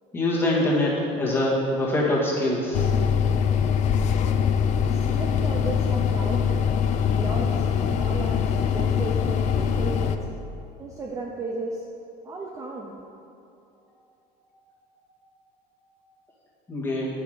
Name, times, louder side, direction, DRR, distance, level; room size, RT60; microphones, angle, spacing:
voice 1, 0.1-2.9 16.7-17.1, left 1 dB, 10° left, -7 dB, 1.9 m, -24 dB
sound 1, 2.7-10.2, left 7 dB, 40° left, 0.4 m, -23 dB
voice 2, 4.9-6.7 7.1-7.6 7.9-10.3 10.8-11.9 12.2-13.0, right 3 dB, 20° right, -1 dB, 0.5 m, -34 dB
8.3 x 5.9 x 4.9 m, 2.7 s
cardioid pair, 150°, 18 cm